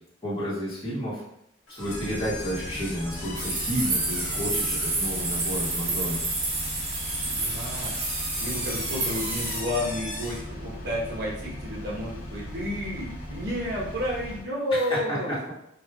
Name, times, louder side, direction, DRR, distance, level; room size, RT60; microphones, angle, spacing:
voice 1, 0.2-1.2 1.7-6.2 14.7-15.5, equal, 25° left, -9 dB, 1.1 m, -31 dB
sound 1, 1.7-10.5, left 2 dB, 75° left, 1.1 m, -40 dB
Engine, 1.8-14.4, equal, 50° left, 0.9 m, -39 dB
sound 2, 3.4-9.6, right 2 dB, 35° right, 0.7 m, -29 dB
voice 2, 7.2-8.0 8.4-15.3, left 1 dB, 55° right, -4 dB, 1.1 m, -31 dB
4.5 x 2.4 x 2.3 m, 0.78 s
head